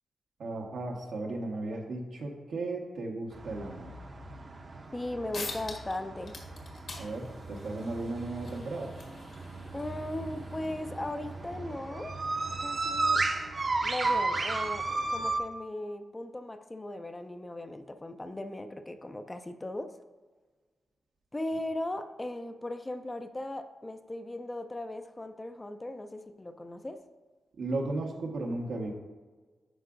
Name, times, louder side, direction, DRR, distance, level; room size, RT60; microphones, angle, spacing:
voice 1, 0.4-4.0 7.0-8.9 27.6-28.9, right 2 dB, 85° right, 0 dB, 1.2 m, -35 dB
sound 1, 3.3-15.4, right 3 dB, 40° right, 0.7 m, -34 dB
voice 2, 4.9-6.4 9.7-12.2 12.6-13.2 13.8-19.9 21.3-27.0, left 1 dB, 20° left, 8 dB, 0.4 m, -38 dB
sound 2, 5.0-5.1 5.3-6.0 6.2-11.4, left 3 dB, 70° left, 1.7 m, -46 dB
9.9 x 5.8 x 2.5 m, 1.4 s
wide cardioid pair, 120°, 0 cm